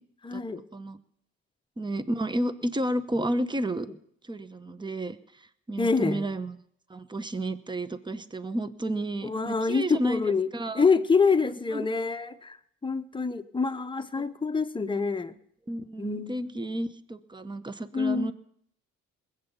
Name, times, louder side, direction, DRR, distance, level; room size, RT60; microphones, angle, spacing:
voice 1, 0.2-0.6 5.8-6.3 9.2-10.5 10.7-12.6 12.8-15.4 16.0-16.3 17.9-18.3, left 4 dB, 15° left, 9 dB, 0.8 m, -26 dB
voice 2, 1.8-3.9 4.2-6.6 6.9-10.8 11.7-11.9 15.7-18.3, right 1 dB, 15° right, 14 dB, 0.9 m, -32 dB
20.0 x 8.2 x 7.1 m, 0.68 s
cardioid pair, 90°, 30 cm